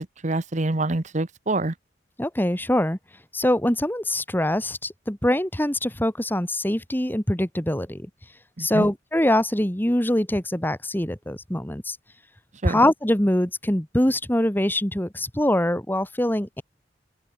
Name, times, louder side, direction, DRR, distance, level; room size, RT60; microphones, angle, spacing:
voice 1, 0.2-1.7 8.6-8.9 12.6-12.8, right 2 dB, 40° right, 1.0 m, -26 dB
voice 2, 2.2-3.0 3.3-8.1 8.6-12.0 12.6-16.6, left 1 dB, 10° left, 1.9 m, -23 dB
open air
head